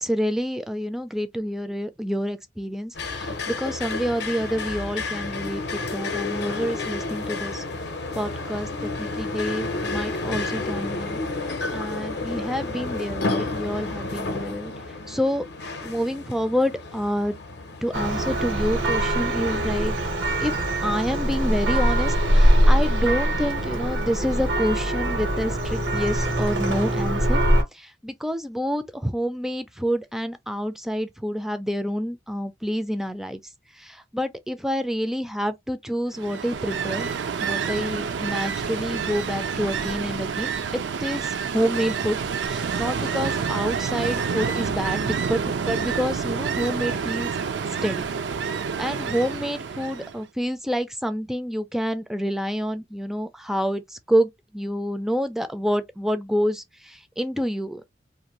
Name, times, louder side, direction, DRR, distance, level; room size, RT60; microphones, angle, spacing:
voice 1, 0.0-7.6 8.1-11.2 11.7-14.7 15.1-15.4 15.8-17.3 17.8-19.9 20.4-20.6 20.8-27.4 27.7-33.4 33.8-37.1 37.4-47.3 47.8-48.1 48.8-57.8, equal, ahead, 0.3 m, -28 dB
sound 1, 2.9-18.4, left 3 dB, 60° left, 0.6 m, -31 dB
Church bell, 17.9-27.6, right 1 dB, 90° right, 1.3 m, -22 dB
Ocean, 36.1-50.2, right 6 dB, 70° right, 0.4 m, -28 dB
2.6 x 2.5 x 2.9 m
head